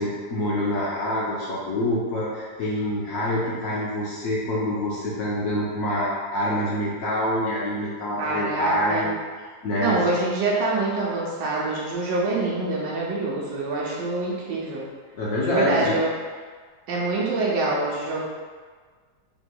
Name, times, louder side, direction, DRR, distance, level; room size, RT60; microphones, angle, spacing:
voice 1, 0.0-9.1 9.6-10.2 15.1-16.0, left 1 dB, 60° left, -6 dB, 1.0 m, -26 dB
voice 2, 8.2-9.1 9.8-14.8 15.4-16.1 16.9-18.2, right 2 dB, 90° right, -5 dB, 1.3 m, -25 dB
5.5 x 2.9 x 2.2 m, 1.5 s
omnidirectional pair, 1.9 m